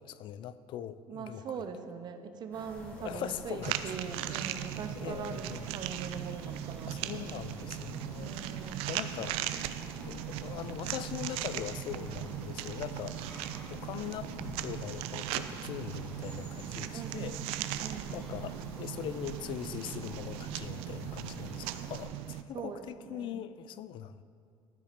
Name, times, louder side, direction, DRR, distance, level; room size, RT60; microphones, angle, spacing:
voice 1, 0.0-1.4 2.9-3.8 4.3-4.5 4.9-5.7 6.8-9.4 10.0-14.3 14.6-17.4 18.1-24.2, left 10 dB, 60° left, 15 dB, 0.4 m, -41 dB
voice 2, 1.1-7.4 8.2-8.8 16.9-17.4 17.8-18.2 22.5-23.4, right 6 dB, 45° right, 8 dB, 0.7 m, -42 dB
sound 1, 2.5-22.1, left 1 dB, 15° left, 2.1 m, -48 dB
sound 2, 3.6-22.4, right 12 dB, 85° right, 0.4 m, -38 dB
12.0 x 5.0 x 4.3 m, 2.4 s
cardioid pair, 100°, 10 cm